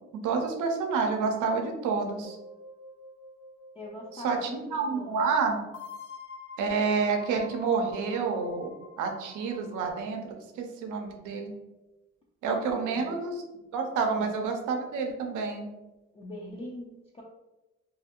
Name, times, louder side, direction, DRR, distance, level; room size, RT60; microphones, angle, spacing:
voice 1, 0.1-2.4 4.1-5.6 6.6-8.7 9.0-11.5 12.4-13.4 13.7-15.7, right 5 dB, 90° right, 3 dB, 0.6 m, -29 dB
sound 1, 2.2-4.5 5.7-10.0, left 5 dB, 80° left, 0.5 m, -47 dB
voice 2, 3.7-4.6 4.9-5.1 12.7-13.1 14.1-14.3 16.1-17.2, left 1 dB, 20° left, -4 dB, 0.4 m, -42 dB
2.6 x 2.4 x 2.8 m, 1.0 s
cardioid pair, 90°, 30 cm